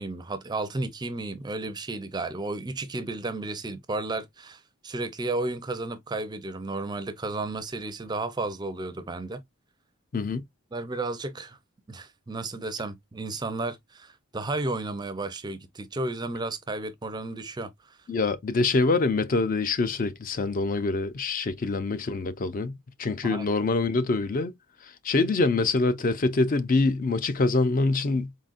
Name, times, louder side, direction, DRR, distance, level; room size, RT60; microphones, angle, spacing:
voice 1, 0.0-9.4 10.7-11.6 11.9-18.0 23.2-23.5, right 2 dB, 20° right, 0.4 m, -33 dB
voice 2, 18.1-24.5 24.8-28.3, left 3 dB, 40° left, 0.4 m, -25 dB
4.2 x 3.8 x 2.4 m
head